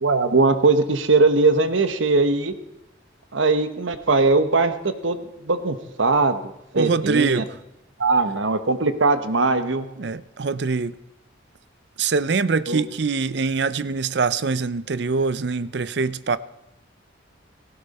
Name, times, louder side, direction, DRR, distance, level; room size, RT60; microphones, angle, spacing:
voice 1, 0.0-2.5 3.3-5.2 5.4-7.4 8.0-9.9 12.7-12.8, right 3 dB, 80° right, 1.1 m, -20 dB
voice 2, 6.7-7.5 10.0-10.9 12.0-16.4, right 4 dB, 60° right, 0.5 m, -23 dB
17.0 x 16.0 x 4.2 m
head